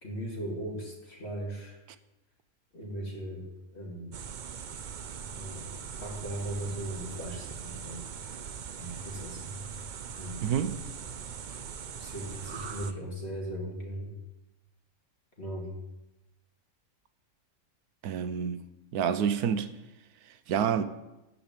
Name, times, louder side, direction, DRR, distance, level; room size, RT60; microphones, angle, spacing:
voice 1, 0.0-1.8 2.7-3.5 3.7-4.2 5.2-5.7 6.0-8.5 8.8-9.6 10.2-10.5 12.0-14.2 15.4-15.7, right 1 dB, 45° left, 2.5 m, -38 dB
sound 1, 4.1-12.9, right 7 dB, 60° right, 0.5 m, -41 dB
voice 2, 10.4-10.8 18.0-18.6 18.9-19.7 20.5-20.8, right 8 dB, 85° right, 1.3 m, -28 dB
14.5 x 5.1 x 9.0 m
omnidirectional pair, 1.6 m